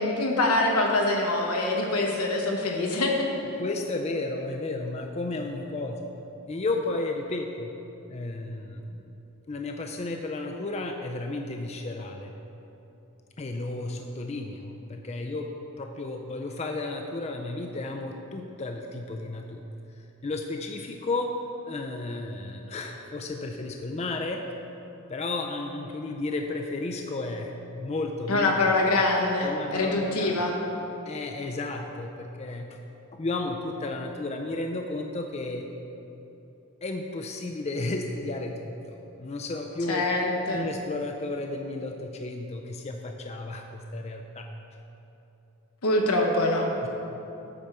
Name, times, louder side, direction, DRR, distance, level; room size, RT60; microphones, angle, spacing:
voice 1, 0.0-3.3 28.3-30.5 39.9-40.7 45.8-46.7, left 2 dB, 85° left, 1 dB, 1.1 m, -24 dB
voice 2, 3.6-6.0 6.5-7.7 8.1-9.0 9.5-12.3 13.4-19.6 20.0-21.4 21.6-24.5 25.1-28.5 29.4-30.3 31.1-32.7 33.1-35.7 36.8-40.1 40.5-44.5 46.8-46.9, left 2 dB, 30° left, 3 dB, 0.4 m, -33 dB
8.8 x 4.4 x 6.6 m, 3.0 s
head